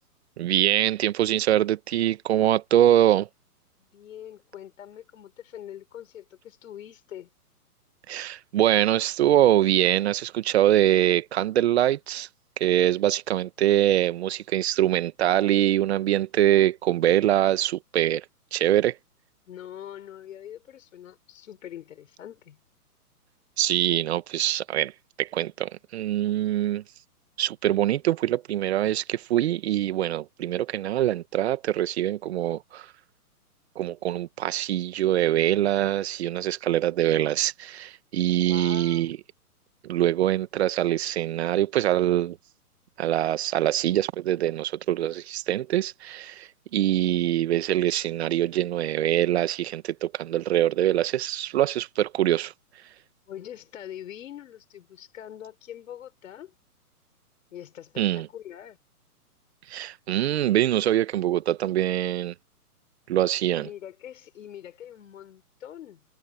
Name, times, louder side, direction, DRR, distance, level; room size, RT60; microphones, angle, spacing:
voice 1, 0.4-3.3 8.1-12.3 12.6-18.2 18.5-19.0 23.6-24.9 25.2-26.8 27.4-32.9 33.7-39.2 39.8-42.4 43.0-52.5 58.0-58.3 59.7-62.3 63.1-63.7, right 12 dB, 45° right, 1.5 m, -24 dB
voice 2, 3.8-7.3 19.5-22.6 38.5-39.1 53.3-56.5 57.5-58.8 63.6-66.0, left 10 dB, 55° left, 4.4 m, -43 dB
hypercardioid pair, 150°, 46 cm